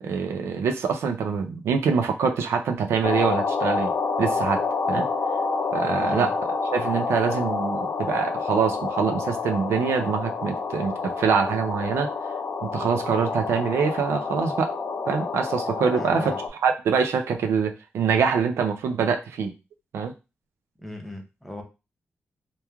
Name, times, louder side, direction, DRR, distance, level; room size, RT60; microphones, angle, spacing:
voice 1, 0.0-3.9 4.2-4.6 4.9-5.1 5.7-6.3 6.7-12.1 12.6-14.7 15.1-16.3 16.6-19.5 19.9-20.1, right 6 dB, 85° right, 5 dB, 0.4 m, -24 dB
sound 1, 3.0-16.5, left 4 dB, 65° left, 0.4 m, -28 dB
voice 2, 6.0-6.3 15.9-16.4 20.8-21.6, left 1 dB, 5° left, 2 dB, 0.7 m, -38 dB
2.9 x 2.3 x 2.2 m, 0.27 s
cardioid pair, 85°, 4 cm